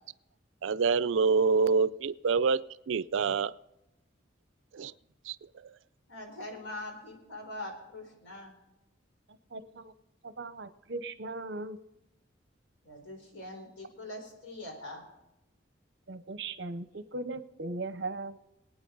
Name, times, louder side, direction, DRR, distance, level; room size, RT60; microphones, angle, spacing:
voice 1, 0.6-3.5 4.7-4.9 5.3-5.4, right 5 dB, 80° right, 18 dB, 0.4 m, -26 dB
voice 2, 6.1-8.5 12.8-15.0, left 1 dB, 85° left, 2 dB, 4.3 m, -43 dB
voice 3, 9.5-9.9 10.2-11.8 16.1-18.4, right 2 dB, 60° right, 12 dB, 0.8 m, -38 dB
23.0 x 9.1 x 3.9 m, 0.92 s
head